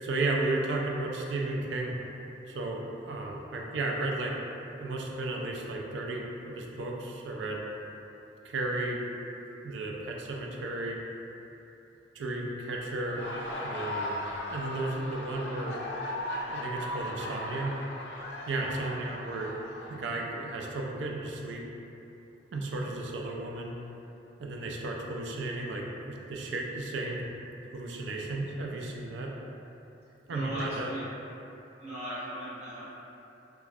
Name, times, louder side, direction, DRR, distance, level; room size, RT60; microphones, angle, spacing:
voice 1, 0.0-1.9 2.5-4.4 4.8-7.6 8.4-9.0 9.6-11.0 12.1-14.2 14.5-15.8 16.5-17.7 18.5-19.5 19.9-21.6 22.5-23.7 24.4-27.2 27.7-29.3 30.3-30.9, right 2 dB, 85° right, -1 dB, 0.4 m, -34 dB
Laughter, 12.9-20.5, left 1 dB, 75° left, 0.5 m, -37 dB
voice 2, 30.3-31.1 31.8-32.8, right 1 dB, 40° right, -13 dB, 0.8 m, -37 dB
2.3 x 2.3 x 3.3 m, 2.9 s
head